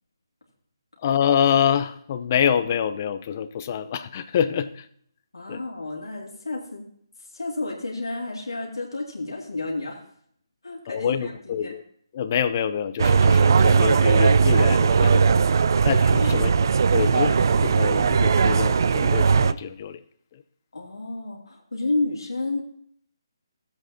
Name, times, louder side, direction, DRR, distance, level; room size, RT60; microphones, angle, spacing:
voice 1, 1.0-4.9 5.5-5.6 10.9-11.8 12.1-15.2 15.8-20.0 20.3-20.4, left 8 dB, 35° left, 12 dB, 0.7 m, -26 dB
voice 2, 5.3-6.9 7.2-10.0 10.6-11.7 15.7-16.4 17.1-17.3 20.7-22.6, left 2 dB, 85° left, -1 dB, 2.4 m, -31 dB
sound 1, 13.0-19.5, right 5 dB, 55° right, 0.4 m, -18 dB
15.0 x 8.0 x 2.8 m, 0.64 s
figure-of-eight pair, 150°, 2 cm